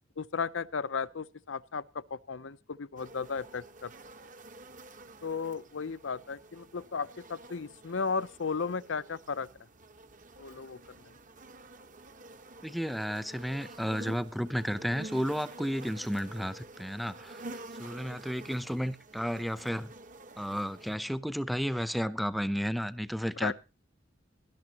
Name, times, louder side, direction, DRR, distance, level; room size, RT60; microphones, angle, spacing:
voice 1, 0.2-3.9 5.2-9.5 10.4-10.8 23.4-23.5, left 5 dB, 80° left, 0.7 m, -35 dB
sound 1, 3.0-21.0, right 2 dB, 45° right, 1.2 m, -49 dB
voice 2, 12.6-19.9 20.4-23.5, equal, ahead, 0.7 m, -33 dB
18.5 x 12.0 x 2.9 m
head